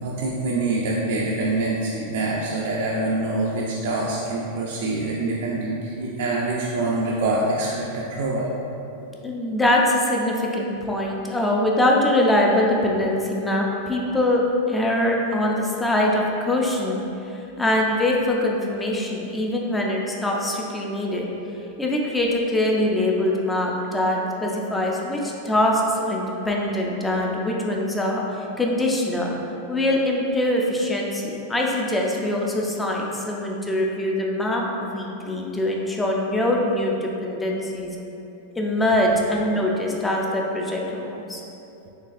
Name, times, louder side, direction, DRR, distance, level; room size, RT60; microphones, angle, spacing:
voice 1, 0.0-8.5, right 2 dB, 70° right, -4 dB, 0.4 m, -25 dB
voice 2, 9.2-14.4 14.7-17.0 17.6-21.3 21.8-29.3 29.7-38.0 38.6-41.4, left 1 dB, 10° left, -1 dB, 0.4 m, -23 dB
3.9 x 3.1 x 2.5 m, 2.9 s
supercardioid pair, 145°, 0 cm